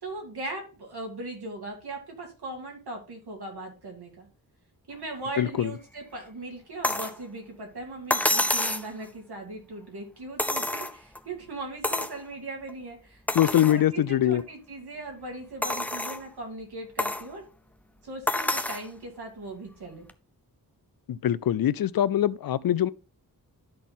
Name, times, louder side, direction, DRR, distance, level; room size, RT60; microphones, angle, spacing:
voice 1, 0.0-4.3 4.9-17.4 18.0-20.1, right 2 dB, 80° right, 2.6 m, -39 dB
voice 2, 5.4-5.7 13.3-14.4 21.1-22.9, left 11 dB, 65° left, 0.5 m, -23 dB
sound 1, 6.8-7.2 8.1-8.9 10.4-11.2 11.8-12.2 12.7-12.8 13.3-13.8 14.4-14.5 15.6-16.2 17.0-17.3 18.3-18.9 20.1-20.2, left 1 dB, 5° left, 0.4 m, -27 dB
12.0 x 4.2 x 3.7 m
wide cardioid pair, 130°, 38 cm